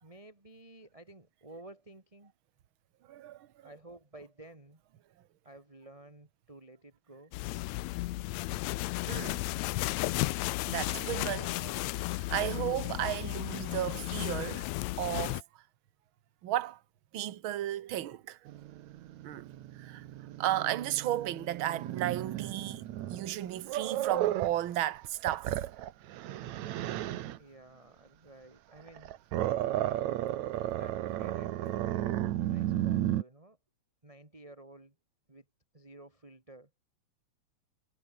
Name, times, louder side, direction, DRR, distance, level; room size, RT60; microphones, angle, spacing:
voice 1, 0.0-2.3 3.6-4.8 5.4-7.3 27.4-29.2 30.7-32.0 32.5-33.6 34.0-34.9 35.3-35.4 35.7-36.7, right 2 dB, 10° right, 2.5 m, -53 dB
voice 2, 3.1-3.5 9.1-9.4 10.6-11.9 12.3-14.7 15.0-15.4 16.4-16.8 17.1-18.4 19.2-19.5 19.8-20.0 20.4-22.8 23.1-25.5, right 13 dB, 55° right, 1.7 m, -34 dB
sound 1, 7.3-15.4, left 20 dB, 80° left, 1.7 m, -34 dB
Growling, 18.5-24.6 25.0-27.4 28.8-33.2, right 13 dB, 75° right, 2.4 m, -34 dB
omnidirectional pair, 3.4 m